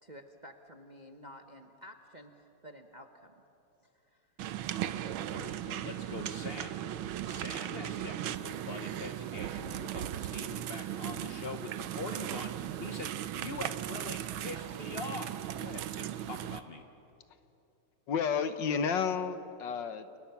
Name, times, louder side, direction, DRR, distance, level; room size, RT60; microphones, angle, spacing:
voice 1, 0.0-3.3 3.8-4.5, equal, 30° right, 4 dB, 1.0 m, -52 dB
sound 1, 4.4-16.6, right 11 dB, 80° right, 1.6 m, -37 dB
voice 2, 5.0-6.8 7.2-16.8, left 4 dB, 45° left, 5 dB, 0.8 m, -44 dB
voice 3, 18.1-20.2, left 6 dB, 65° left, 10 dB, 1.6 m, -31 dB
29.0 x 29.0 x 5.9 m, 2.8 s
omnidirectional pair, 2.2 m